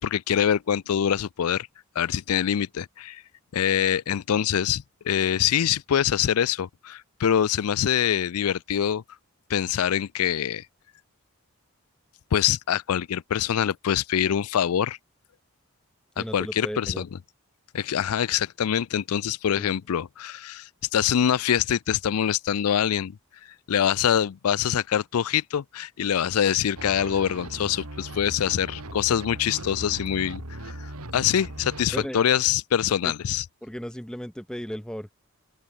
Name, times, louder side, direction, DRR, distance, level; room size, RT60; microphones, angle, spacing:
voice 1, 0.0-1.7 2.0-3.2 3.5-9.0 9.5-10.6 12.3-15.0 16.2-17.1 17.7-23.2 23.7-33.4, left 9 dB, 80° left, 0.4 m, -24 dB
voice 2, 16.2-17.1 19.6-19.7 31.9-32.2 33.0-33.1 33.6-35.1, equal, 5° left, 0.7 m, -35 dB
sound 1, 26.8-32.1, right 1 dB, 85° right, 4.5 m, -38 dB
open air
head